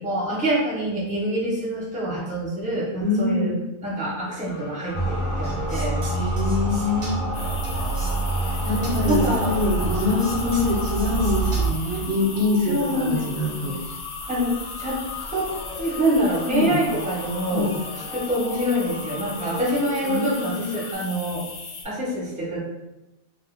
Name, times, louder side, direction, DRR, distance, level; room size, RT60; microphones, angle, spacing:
voice 1, 0.0-3.5 3.8-6.0 8.7-9.6 12.6-13.9 14.3-15.0 15.3-15.5 15.8-17.7 18.1-21.4 21.8-22.6, right 1 dB, 5° right, -6 dB, 0.6 m, -26 dB
voice 2, 3.0-3.6 6.1-7.2 8.6-13.8 16.5-16.8 17.5-17.8 20.0-20.8, left 2 dB, 80° right, -1 dB, 1.0 m, -24 dB
sound 1, 4.5-20.9, left 3 dB, 65° left, 0.9 m, -38 dB
sound 2, 4.9-11.7, right 2 dB, 50° right, 0.6 m, -26 dB
sound 3, 7.3-21.8, left 4 dB, 85° left, 0.4 m, -38 dB
2.4 x 2.1 x 3.2 m, 0.93 s
omnidirectional pair, 1.4 m